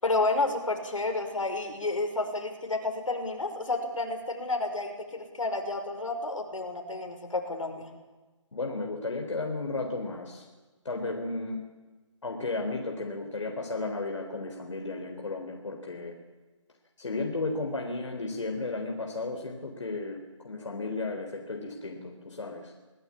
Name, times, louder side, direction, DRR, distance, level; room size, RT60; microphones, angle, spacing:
voice 1, 0.0-7.9, left 2 dB, 85° left, 4 dB, 5.7 m, -30 dB
voice 2, 8.5-10.5 10.8-11.6 12.2-16.2 17.0-20.2 20.4-22.7, left 3 dB, 70° left, 2 dB, 3.9 m, -34 dB
25.5 x 17.5 x 8.6 m, 1.2 s
hypercardioid pair, 170°, 16 cm